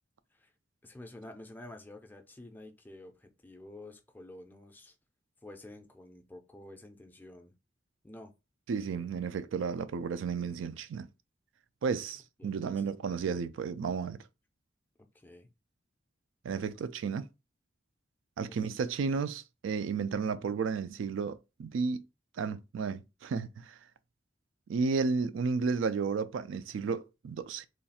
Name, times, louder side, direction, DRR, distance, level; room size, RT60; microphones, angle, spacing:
voice 1, 0.8-4.9 5.4-7.5 8.0-8.3 10.4-10.6 12.4-12.8 15.1-15.5 18.5-18.7, left 1 dB, 10° left, 0.4 m, -50 dB
voice 2, 8.7-11.1 11.8-14.2 16.4-17.3 18.4-22.0 22.4-23.8 24.7-27.7, right 5 dB, 85° right, 0.3 m, -33 dB
3.1 x 2.3 x 4.1 m
head